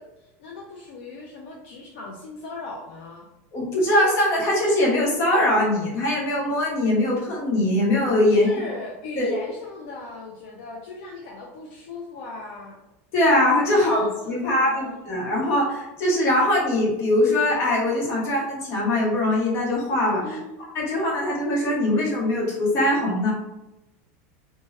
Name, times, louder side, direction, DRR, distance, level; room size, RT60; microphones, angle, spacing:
voice 1, 0.0-3.3 8.3-12.8 13.7-15.0 20.2-20.6, left 3 dB, 60° left, -2 dB, 0.5 m, -38 dB
voice 2, 3.5-8.5 9.2-9.3 13.1-20.2 20.7-23.3, left 1 dB, 35° left, -3 dB, 0.9 m, -22 dB
3.1 x 2.2 x 2.7 m, 0.96 s
supercardioid pair, 165°, 8 cm